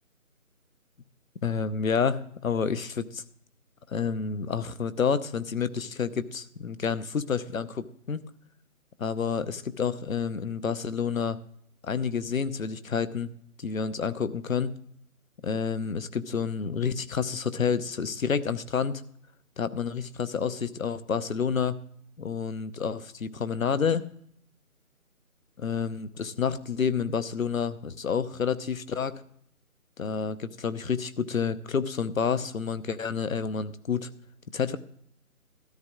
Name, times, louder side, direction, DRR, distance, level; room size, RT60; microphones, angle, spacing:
voice 1, 1.4-3.2 3.9-8.2 9.0-11.4 11.8-13.3 13.6-14.7 15.4-19.0 19.6-21.8 22.2-24.1 25.6-29.2 30.0-34.1 34.5-34.8, left 6 dB, 70° left, 14 dB, 0.9 m, -29 dB
13.5 x 12.5 x 3.6 m, 0.68 s
figure-of-eight pair, 155°, 42 cm